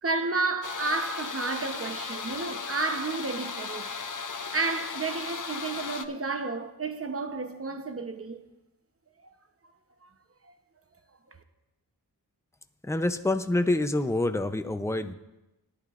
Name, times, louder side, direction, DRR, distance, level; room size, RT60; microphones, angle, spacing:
voice 1, 0.0-3.9 4.5-8.5 10.0-10.1 10.4-10.5 11.3-11.4, right 3 dB, 35° right, 0.9 m, -31 dB
sound 1, 0.6-6.0, left 5 dB, 50° left, 0.7 m, -36 dB
voice 2, 12.8-15.1, left 2 dB, 5° left, 0.6 m, -27 dB
17.5 x 11.0 x 2.5 m
wide cardioid pair, 60°, 40 cm